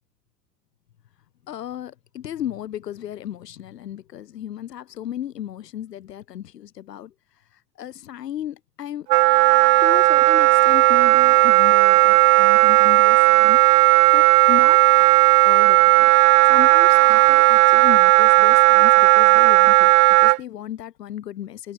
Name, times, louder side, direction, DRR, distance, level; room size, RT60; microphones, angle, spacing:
voice 1, 1.5-7.1 7.8-9.1 9.8-15.0 15.4-16.1 16.4-19.9 20.2-21.7, left 11 dB, 80° left, 2.8 m, -34 dB
Wind instrument woodwind instrument, 9.1-20.4, right 23 dB, 70° right, 0.7 m, -14 dB
hypercardioid pair, 65°, 48 cm